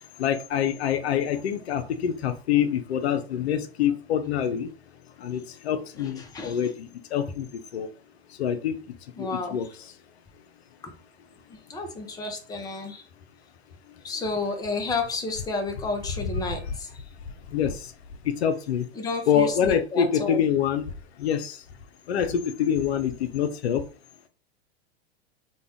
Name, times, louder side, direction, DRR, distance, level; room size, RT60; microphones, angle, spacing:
voice 1, 0.2-4.7 5.2-7.5 7.7-7.9 8.4-8.8 9.2-9.7 17.5-17.8 18.3-18.9 19.3-20.9 21.2-21.6 22.1-23.8, left 8 dB, 75° left, 9 dB, 0.5 m, -25 dB
voice 2, 6.0-6.6 9.2-9.6 11.5-13.0 14.0-16.9 18.9-20.4, left 3 dB, 10° left, 3 dB, 0.6 m, -31 dB
2.5 x 2.2 x 3.3 m, 0.35 s
hypercardioid pair, 95°, 33 cm